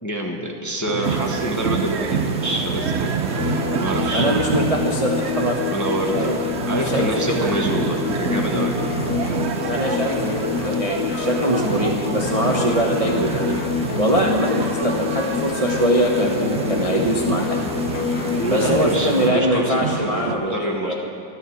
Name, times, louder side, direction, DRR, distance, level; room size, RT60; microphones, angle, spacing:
voice 1, 0.0-3.1 3.8-4.3 5.7-8.8 18.3-20.9, right 1 dB, 10° left, 0 dB, 1.0 m, -26 dB
sound 1, 0.9-20.3, right 6 dB, 80° right, 0.6 m, -28 dB
sound 2, 1.0-19.3, equal, 5° right, 1.2 m, -34 dB
sound 3, 3.3-18.9, left 7 dB, 65° left, 1.0 m, -27 dB
voice 2, 4.1-5.6 6.1-7.5 9.7-13.6 14.0-17.6 18.5-20.9, right 1 dB, 25° right, 0 dB, 0.9 m, -22 dB
13.0 x 12.0 x 7.2 m, 2.5 s
omnidirectional pair, 2.0 m